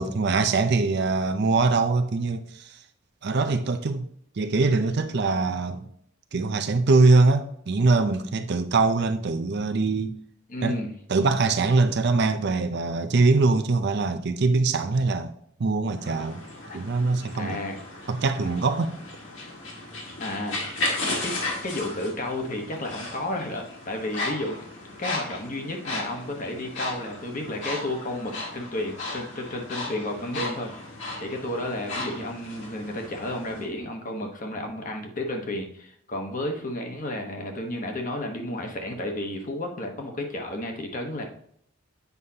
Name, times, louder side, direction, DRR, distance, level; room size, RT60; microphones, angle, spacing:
voice 1, 0.0-2.8 3.2-4.1 4.4-5.9 6.3-10.2 10.6-10.8 11.1-15.3 15.6-16.4 16.7-17.6 18.1-18.9, right 3 dB, 50° right, 0.5 m, -23 dB
voice 2, 10.5-10.9 16.7-16.8 17.4-17.8 18.4-18.5 20.2-20.6 21.2-21.4 21.6-24.6 25.0-41.2, left 1 dB, 40° left, 1.1 m, -32 dB
sound 1, 16.0-33.7, left 2 dB, 65° left, 1.9 m, -35 dB
8.1 x 5.3 x 2.8 m
head